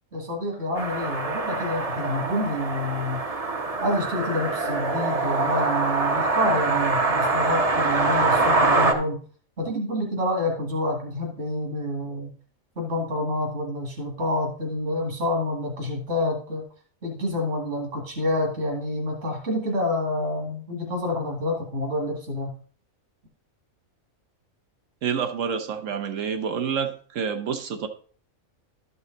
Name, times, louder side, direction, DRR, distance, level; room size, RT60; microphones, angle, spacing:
voice 1, 0.1-3.2 3.8-9.2 9.6-12.3 12.8-16.7 17.0-22.5, left 1 dB, 55° right, -1 dB, 2.5 m, -28 dB
sound 1, 0.8-8.9, right 3 dB, 30° right, 0.8 m, -24 dB
voice 2, 25.0-27.9, right 7 dB, 70° right, 6 dB, 1.3 m, -28 dB
12.5 x 5.5 x 3.9 m, 0.43 s
omnidirectional pair, 1.4 m